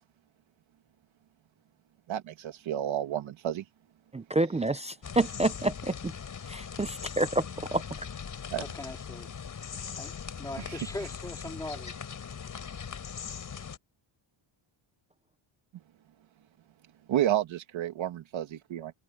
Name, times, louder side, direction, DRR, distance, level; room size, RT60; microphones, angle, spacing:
voice 1, 2.1-3.6 8.5-8.6 17.1-18.9, right 11 dB, 65° right, 2.3 m, -30 dB
voice 2, 4.1-5.9 6.5-7.4 7.7-7.8, right 2 dB, 15° right, 0.4 m, -28 dB
sound 1, 5.0-13.8, left 7 dB, 40° left, 5.2 m, -40 dB
voice 3, 8.6-9.3 10.0-10.1 10.4-11.9, left 1 dB, 5° left, 3.0 m, -40 dB
wide cardioid pair, 175°, 49 cm